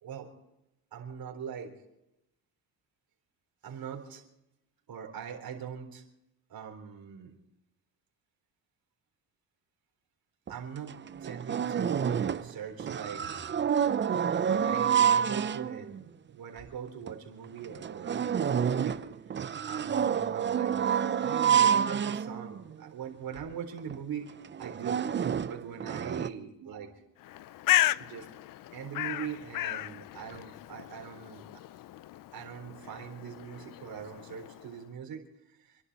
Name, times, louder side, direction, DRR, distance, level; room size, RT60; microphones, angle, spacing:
voice 1, 0.9-1.7 3.6-4.2 4.9-6.0 6.5-7.3 10.5-13.3 13.8-19.0 19.7-20.9 21.2-24.3 24.6-25.0 25.4-26.9 28.0-28.3 28.7-31.4 32.3-35.8, right 8 dB, 55° right, 2 dB, 3.9 m, -41 dB
sound 1, 10.5-10.6 10.9-12.5 12.8-16.0 16.6-16.7 17.1-17.2 17.6-22.8 23.4-23.5 23.8-24.0 24.4-26.3, right 8 dB, 25° right, 0.6 m, -28 dB
Bird, 27.2-34.8, left 14 dB, 50° left, 0.5 m, -34 dB
29.0 x 11.5 x 4.2 m, 0.87 s
cardioid pair, 115°, 42 cm